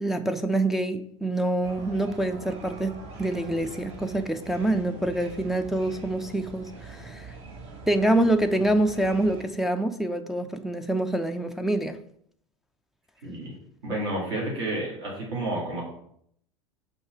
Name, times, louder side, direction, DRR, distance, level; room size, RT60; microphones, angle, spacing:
voice 1, 0.0-7.3 7.9-12.0, right 1 dB, ahead, 5 dB, 0.4 m, -26 dB
sound 1, 1.6-9.4, right 2 dB, 40° right, 1.3 m, -43 dB
voice 2, 13.2-13.5 13.8-15.8, right 1 dB, 55° right, -4 dB, 2.4 m, -30 dB
5.3 x 3.7 x 5.8 m, 0.68 s
figure-of-eight pair, 75°, 16 cm